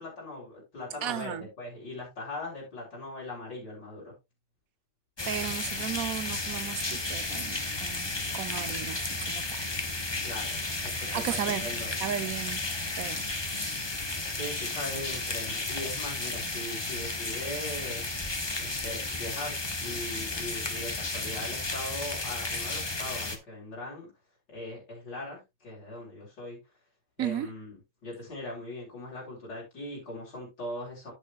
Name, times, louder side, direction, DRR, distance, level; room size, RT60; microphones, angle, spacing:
voice 1, 0.0-4.1 10.2-11.9 14.3-18.1 18.6-19.5 19.8-24.1 24.5-26.6 27.2-31.1, left 2 dB, 70° left, 4.5 m, -40 dB
voice 2, 1.0-1.5 5.3-9.7 11.1-11.7 12.0-12.6 13.0-13.2 27.2-27.5, right 10 dB, 60° right, 1.1 m, -35 dB
sound 1, 5.2-23.4, left 2 dB, 20° left, 0.8 m, -33 dB
10.0 x 8.7 x 2.4 m
omnidirectional pair, 1.9 m